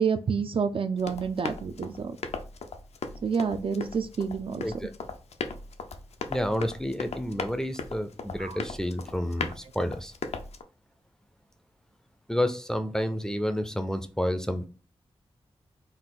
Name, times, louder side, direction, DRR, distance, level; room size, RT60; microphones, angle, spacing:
voice 1, 0.0-2.1 3.2-4.6 8.4-8.6, right 6 dB, 55° right, 8 dB, 0.4 m, -28 dB
Run, 1.0-10.6, left 4 dB, 80° left, 0.5 m, -38 dB
voice 2, 6.3-10.1 12.3-14.7, equal, 5° left, 8 dB, 0.4 m, -30 dB
4.0 x 2.4 x 3.7 m, 0.35 s
wide cardioid pair, 110°, 11 cm